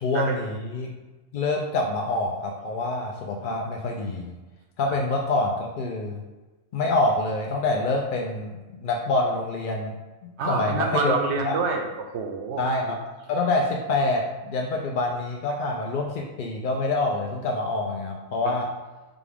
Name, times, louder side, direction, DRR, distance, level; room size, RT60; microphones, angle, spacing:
voice 1, 0.0-0.9 1.3-4.3 4.8-6.2 6.7-9.9 10.5-11.2 11.4-11.6 12.6-13.0 13.3-18.7, left 2 dB, 70° left, 0 dB, 0.4 m, -26 dB
voice 2, 10.4-12.7 18.4-18.6, right 4 dB, 65° right, 3 dB, 0.8 m, -27 dB
5.2 x 2.3 x 3.4 m, 1.2 s
omnidirectional pair, 1.4 m